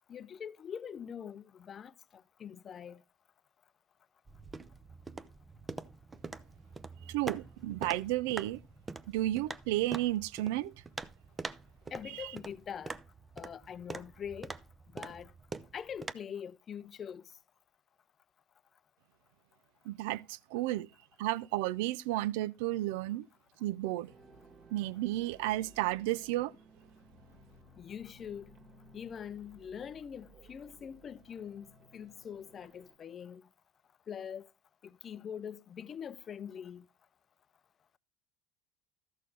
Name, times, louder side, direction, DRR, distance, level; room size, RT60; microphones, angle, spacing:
voice 1, 0.1-3.0 11.9-12.9 13.4-14.5 14.9-15.3 15.7-17.2 27.8-28.5 28.9-33.4 34.1-34.5 34.8-36.8, left 8 dB, 30° left, 0.5 m, -43 dB
sound 1, 4.3-16.1, right 3 dB, 15° right, 0.5 m, -45 dB
voice 2, 7.1-8.6 9.1-10.7 12.1-12.3 19.9-20.9 21.2-23.3 23.6-24.1 24.7-26.5, right 16 dB, 80° right, 0.5 m, -32 dB
sound 2, 24.1-33.0, right 2 dB, 40° right, 1.9 m, -59 dB
13.5 x 6.5 x 3.9 m
supercardioid pair, 130°, 0 cm